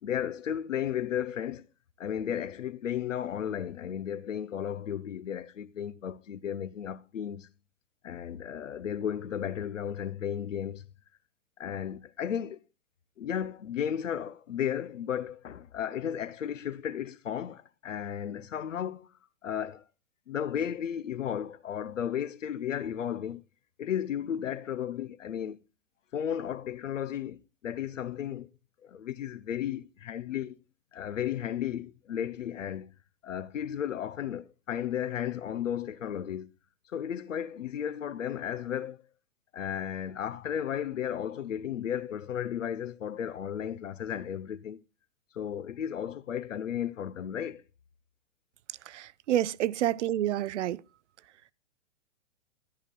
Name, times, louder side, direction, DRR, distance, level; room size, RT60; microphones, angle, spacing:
voice 1, 0.0-1.7 2.0-7.5 8.0-10.9 11.6-12.6 13.2-19.1 19.4-19.8 20.3-23.4 23.8-25.6 26.1-28.5 28.8-30.6 30.9-32.9 33.2-36.5 36.9-39.0 39.5-44.8 45.3-47.6, left 9 dB, 85° left, 0.7 m, -34 dB
voice 2, 48.9-50.8, right 12 dB, 70° right, 0.5 m, -28 dB
13.5 x 11.0 x 2.2 m
hypercardioid pair, 125°, 37 cm